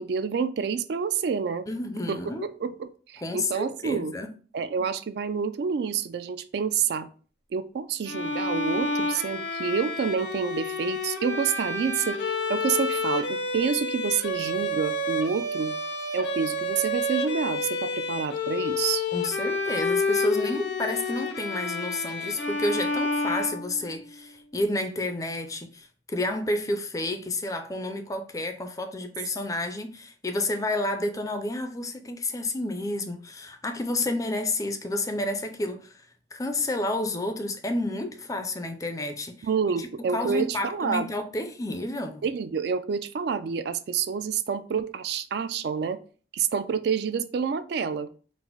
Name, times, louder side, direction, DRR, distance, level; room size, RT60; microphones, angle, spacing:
voice 1, 0.0-1.7 2.1-2.2 2.6-4.1 4.5-7.1 7.5-15.8 16.1-19.0 39.4-41.1 42.2-46.0 46.3-48.1, right 6 dB, 60° right, 0.3 m, -28 dB
voice 2, 1.7-2.5 3.2-4.3 19.1-39.5 39.8-42.2, left 1 dB, 20° left, 0.4 m, -30 dB
Bowed string instrument, 8.1-24.0, left 2 dB, 70° left, 0.6 m, -29 dB
4.0 x 2.0 x 4.4 m
head